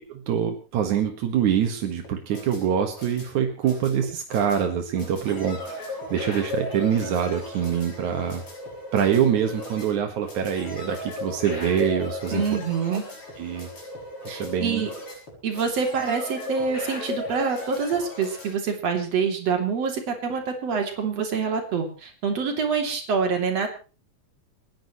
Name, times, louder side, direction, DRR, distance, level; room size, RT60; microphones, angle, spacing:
voice 1, 0.1-8.4 8.9-12.4 13.4-13.7 14.2-14.9, right 8 dB, 85° right, 4 dB, 3.0 m, -25 dB
sound 1, 2.0-18.5, left 2 dB, 45° left, 7.6 m, -36 dB
voice 2, 12.3-13.0 14.3-14.9 15.4-23.7, right 5 dB, 60° right, 3 dB, 4.0 m, -26 dB
29.5 x 11.0 x 3.1 m, 0.36 s
omnidirectional pair, 3.3 m